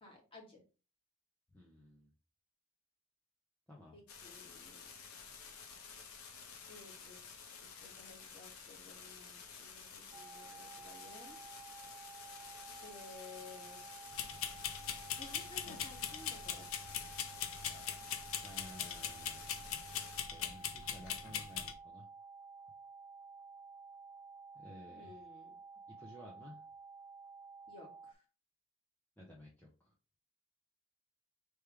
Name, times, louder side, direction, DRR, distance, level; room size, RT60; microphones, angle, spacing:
voice 1, 0.0-0.6 3.9-4.9 6.7-11.4 12.8-13.9 15.2-16.7 25.0-25.6 27.7-28.2, left 3 dB, 25° left, -1 dB, 1.7 m, -56 dB
voice 2, 1.5-2.1 3.7-4.0 18.4-19.8 20.1-22.1 24.5-25.2 26.0-26.6 29.2-29.9, left 1 dB, 10° left, -4 dB, 0.8 m, -55 dB
sound 1, 4.1-20.2, left 5 dB, 90° left, 1.0 m, -52 dB
sound 2, 10.1-28.1, right 4 dB, 10° right, 0.3 m, -53 dB
sound 3, 14.1-21.7, left 9 dB, 65° left, 0.6 m, -41 dB
3.5 x 3.1 x 4.8 m, 0.35 s
head